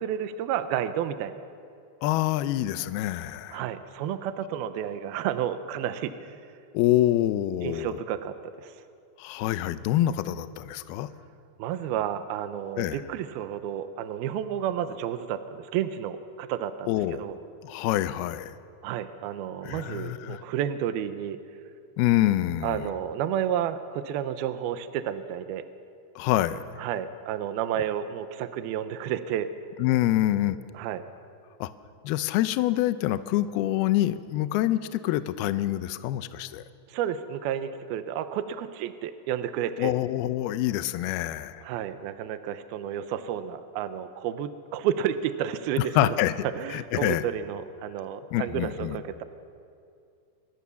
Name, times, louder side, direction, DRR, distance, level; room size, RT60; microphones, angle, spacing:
voice 1, 0.0-1.4 3.5-6.4 7.6-8.7 11.6-17.3 18.8-21.4 22.6-25.7 26.8-29.5 30.7-31.0 36.9-39.9 41.6-46.1 46.4-49.2, right 10 dB, 75° right, 10 dB, 2.3 m, -31 dB
voice 2, 2.0-3.6 6.7-8.0 9.2-11.1 12.8-13.0 16.9-17.3 17.6-18.5 19.6-20.4 22.0-22.9 26.2-26.6 29.8-30.6 31.6-31.7 32.0-36.6 39.8-41.6 45.8-46.3 46.7-47.2 48.3-49.0, left 14 dB, 80° left, 12 dB, 2.3 m, -26 dB
25.5 x 20.0 x 7.1 m, 2.5 s
omnidirectional pair, 5.3 m